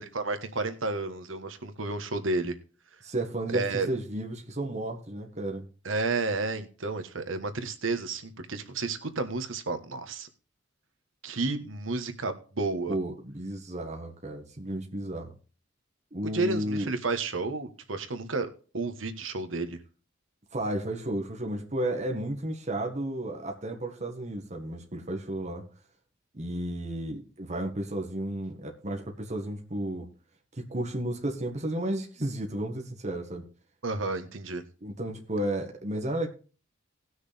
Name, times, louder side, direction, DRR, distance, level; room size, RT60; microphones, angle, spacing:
voice 1, 0.0-2.5 3.5-3.9 5.8-10.3 11.2-12.9 16.2-18.5 18.7-19.8 33.8-34.6, right 3 dB, 90° right, 8 dB, 1.4 m, -31 dB
voice 2, 3.0-5.6 12.9-15.3 16.1-16.9 20.5-25.6 26.3-30.1 30.6-33.4 34.8-36.3, right 1 dB, 35° right, 2 dB, 1.6 m, -33 dB
18.5 x 6.3 x 3.5 m, 0.36 s
head